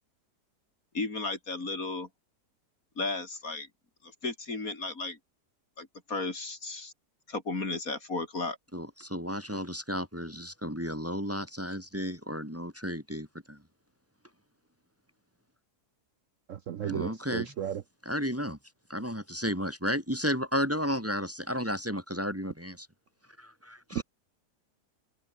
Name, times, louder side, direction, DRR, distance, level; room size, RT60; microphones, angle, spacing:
voice 1, 0.9-2.1 3.0-3.7 4.0-5.2 5.8-6.9 7.3-8.6, left 3 dB, 55° left, 4.1 m, -34 dB
voice 2, 8.7-13.6 16.8-17.5 18.0-18.6 18.9-22.9 23.4-24.0, equal, 10° right, 2.7 m, -33 dB
voice 3, 16.5-17.8 23.9-24.0, right 10 dB, 60° right, 1.0 m, -34 dB
omnidirectional pair, 1.8 m